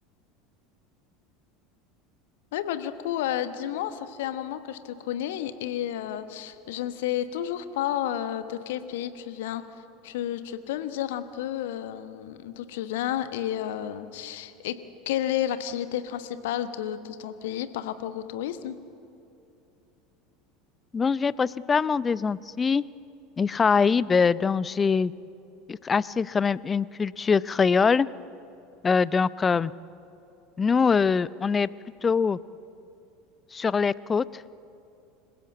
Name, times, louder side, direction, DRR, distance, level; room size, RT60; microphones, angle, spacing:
voice 1, 2.5-9.6 10.0-14.7 15.1-18.8, left 11 dB, 60° left, 11 dB, 1.1 m, -31 dB
voice 2, 20.9-22.8 23.4-25.1 25.7-28.1 28.8-29.7 30.6-31.7 32.0-32.4 33.5-34.2, left 5 dB, 20° left, 20 dB, 0.4 m, -23 dB
26.5 x 16.5 x 7.5 m, 2.7 s
figure-of-eight pair, 75°, 0 cm